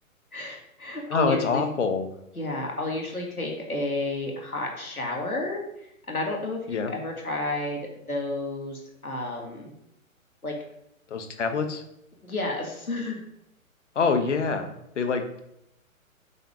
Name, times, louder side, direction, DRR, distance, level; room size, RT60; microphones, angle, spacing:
voice 1, 0.3-1.6 2.4-7.8 8.1-9.7 10.4-10.5 12.2-13.2, left 2 dB, 90° left, 0 dB, 2.2 m, -31 dB
voice 2, 1.1-2.1 6.7-6.9 11.1-11.8 13.9-15.4, left 5 dB, 55° left, 6 dB, 1.3 m, -26 dB
7.9 x 4.1 x 5.0 m, 0.80 s
figure-of-eight pair, 130°, 42 cm